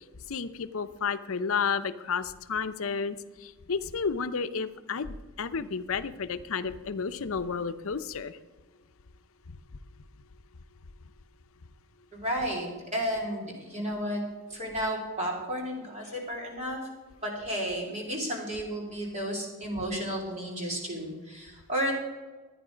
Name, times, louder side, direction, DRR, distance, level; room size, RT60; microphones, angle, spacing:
voice 1, 0.3-8.4, left 5 dB, 65° left, 12 dB, 0.6 m, -32 dB
voice 2, 12.1-14.2 14.5-16.8 17.2-21.9, equal, 30° right, -1 dB, 3.1 m, -32 dB
13.0 x 9.4 x 5.1 m, 1.3 s
head